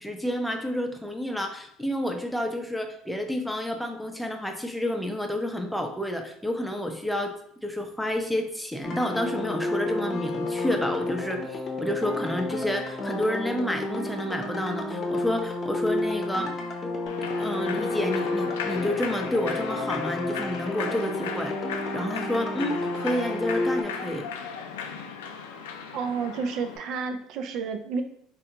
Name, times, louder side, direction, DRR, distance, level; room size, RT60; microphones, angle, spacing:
voice 1, 0.0-7.3 7.6-16.6 17.4-21.5 21.9-24.3, left 1 dB, 5° left, 3 dB, 0.6 m, -29 dB
sound 1, 8.8-23.8, left 2 dB, 40° left, 0.7 m, -31 dB
Human voice / Clapping / Cheering, 17.1-26.8, left 6 dB, 85° left, 0.3 m, -36 dB
voice 2, 25.9-28.0, right 5 dB, 60° right, 6 dB, 0.4 m, -30 dB
3.7 x 2.1 x 2.8 m, 0.69 s
hypercardioid pair, 75°, 0 cm